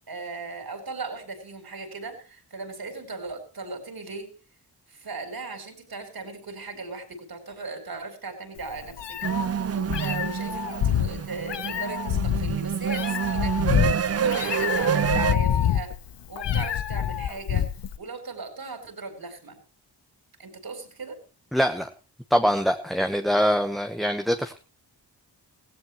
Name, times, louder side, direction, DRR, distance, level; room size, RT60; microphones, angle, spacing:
voice 1, 0.1-4.3 4.9-15.9 16.3-17.7 18.0-19.6 20.4-21.2, right 3 dB, 55° right, 6 dB, 4.1 m, -37 dB
Meow, 8.6-18.0, left 9 dB, 80° left, 0.9 m, -27 dB
sound 1, 9.2-15.4, right 7 dB, 35° right, 0.6 m, -27 dB
voice 2, 21.5-21.9 22.3-24.6, equal, ahead, 6 dB, 1.1 m, -23 dB
16.5 x 15.5 x 3.1 m, 0.36 s
cardioid pair, 45°, 42 cm